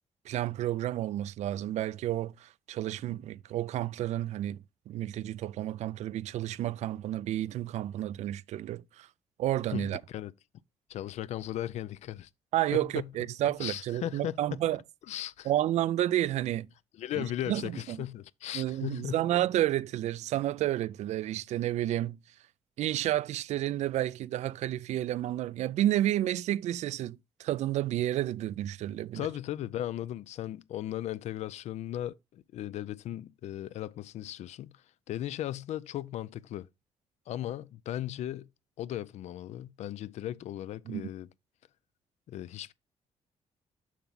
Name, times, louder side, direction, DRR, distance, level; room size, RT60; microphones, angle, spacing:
voice 1, 0.3-9.1 9.4-10.0 12.5-14.8 15.4-16.7 17.2-18.0 18.5-22.2 22.8-29.3 40.9-41.1, right 13 dB, 75° right, 0.4 m, -31 dB
voice 2, 9.7-10.3 10.9-12.3 12.7-13.1 13.6-14.6 15.1-15.5 17.0-19.2 29.1-36.7 37.3-38.5 38.8-41.3 42.3-42.7, left 12 dB, 75° left, 0.4 m, -37 dB
7.2 x 5.9 x 3.8 m
cardioid pair, 115°, 12 cm